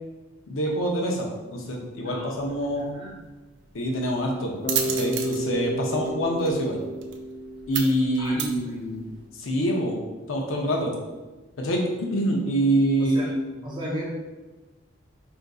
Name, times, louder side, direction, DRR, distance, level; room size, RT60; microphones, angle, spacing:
voice 1, 0.5-2.9 3.7-4.6 4.8-6.8 7.7-9.1 9.4-10.0 10.3-10.9 11.6-13.4, right 1 dB, 85° left, 0 dB, 0.6 m, -25 dB
voice 2, 2.0-2.5 2.8-3.1 8.2-8.8 13.0-13.3 13.6-14.0, equal, 20° right, -5 dB, 0.7 m, -35 dB
sound 1, 2.3-9.3, right 8 dB, 60° right, 0.3 m, -35 dB
Bass guitar, 4.6-8.6, right 1 dB, 35° left, 0.5 m, -32 dB
3.8 x 2.5 x 2.3 m, 1.2 s
head